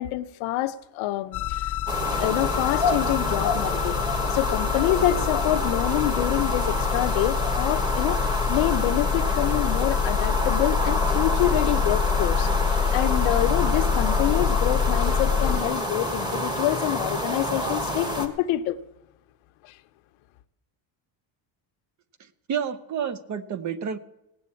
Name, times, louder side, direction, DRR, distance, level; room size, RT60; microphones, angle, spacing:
voice 1, 0.0-1.7 2.1-4.0 4.3-18.8 19.6-19.7, left 14 dB, 85° left, 1.0 m, -27 dB
sound 1, 1.3-15.6, left 8 dB, 40° left, 0.6 m, -26 dB
sound 2, 1.9-18.3, equal, 10° right, 1.3 m, -28 dB
voice 2, 22.5-24.0, right 7 dB, 40° right, 0.8 m, -29 dB
17.5 x 8.0 x 8.5 m
cardioid pair, 170°, 47 cm